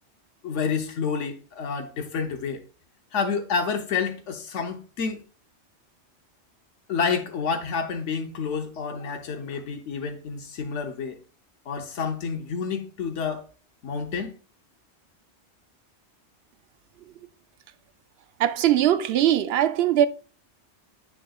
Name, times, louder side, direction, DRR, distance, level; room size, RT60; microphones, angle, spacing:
voice 1, 0.4-2.6 3.1-5.2 6.9-11.2 11.7-13.4 13.8-14.3, left 5 dB, 85° left, 1.1 m, -29 dB
voice 2, 18.4-20.1, right 11 dB, 65° right, 0.8 m, -21 dB
7.6 x 6.4 x 2.3 m
omnidirectional pair, 1.2 m